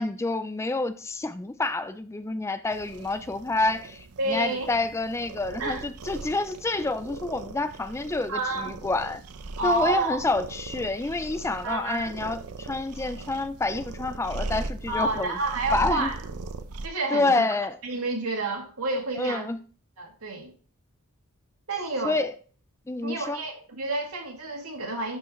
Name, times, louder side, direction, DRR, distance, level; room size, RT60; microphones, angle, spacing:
voice 1, 0.0-9.2 9.6-15.3 15.7-16.1 17.1-17.8 19.2-19.6 22.0-22.3 22.9-23.4, left 2 dB, 10° left, 0.3 m, -28 dB
sound 1, 2.7-16.9, right 3 dB, 85° right, 0.6 m, -39 dB
voice 2, 4.2-4.7 5.6-5.8 8.3-8.7 9.6-10.2 11.6-12.1 14.9-16.2 16.8-17.4 17.8-19.5 20.0-20.5 21.7-22.2 23.0-25.2, right 2 dB, 70° right, 2.1 m, -29 dB
12.0 x 4.7 x 3.1 m
head